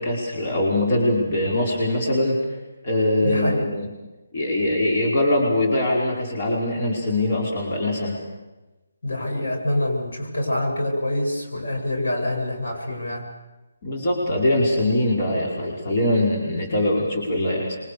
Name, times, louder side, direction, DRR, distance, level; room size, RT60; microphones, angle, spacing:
voice 1, 0.0-2.4 2.8-3.9 4.3-8.2 13.8-17.8, left 1 dB, 40° left, -2 dB, 5.2 m, -22 dB
voice 2, 3.2-3.7 9.0-13.3, left 1 dB, 80° left, 1 dB, 7.9 m, -25 dB
27.5 x 24.0 x 6.9 m, 1.1 s
hypercardioid pair, 160°, 0 cm